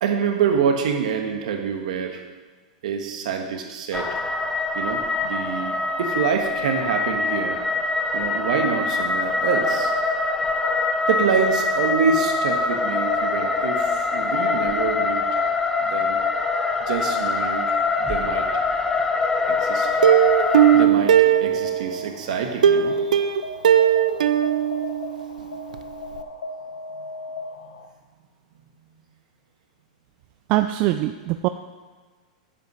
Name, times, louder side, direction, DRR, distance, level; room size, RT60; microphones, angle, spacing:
voice 1, 0.0-2.2 2.8-4.1 4.7-7.6 8.1-9.9 11.1-15.4 15.8-16.2 16.8-18.6 19.5-19.9 20.7-23.3 27.5-27.7 28.5-29.0, right 6 dB, 70° right, 4 dB, 1.4 m, -26 dB
sound 1, 3.9-20.9, left 3 dB, 10° left, 0.5 m, -24 dB
sound 2, 9.4-27.9, equal, 90° left, 0.9 m, -35 dB
Plucked string instrument, 20.0-22.0 22.6-25.4 25.7-25.8 26.2-26.3, right 10 dB, 85° right, 0.6 m, -18 dB
voice 2, 30.5-31.5, right 15 dB, 45° right, 9 dB, 0.4 m, -22 dB
8.7 x 5.3 x 6.3 m, 1.4 s
hypercardioid pair, 130°, 4 cm